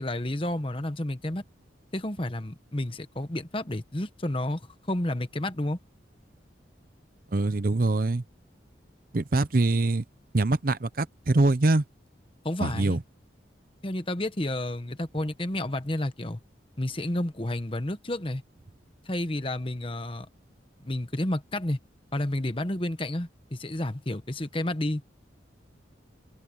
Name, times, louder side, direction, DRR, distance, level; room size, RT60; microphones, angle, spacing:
voice 1, 0.0-1.4 1.9-4.6 4.9-5.8 12.4-13.0 13.8-16.4 16.8-18.4 19.0-20.3 20.8-21.8 22.1-25.0, left 1 dB, 30° left, 1.2 m, -30 dB
voice 2, 7.3-8.2 9.1-10.0 10.3-11.8 12.6-13.0, right 2 dB, 50° right, 0.7 m, -24 dB
head